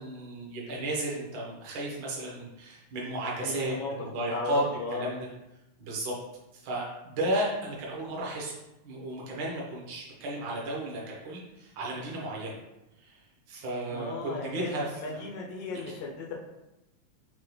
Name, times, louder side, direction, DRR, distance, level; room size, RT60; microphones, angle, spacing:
voice 1, 0.0-4.6 4.9-5.3 5.8-6.1 6.5-8.5 8.8-12.6 13.0-13.2 13.5-14.8, right 1 dB, 65° right, -3 dB, 1.2 m, -33 dB
voice 2, 3.4-3.9 4.3-5.1 13.9-16.3, left 3 dB, 85° left, -1 dB, 1.3 m, -36 dB
6.4 x 2.2 x 3.1 m, 0.94 s
omnidirectional pair, 3.4 m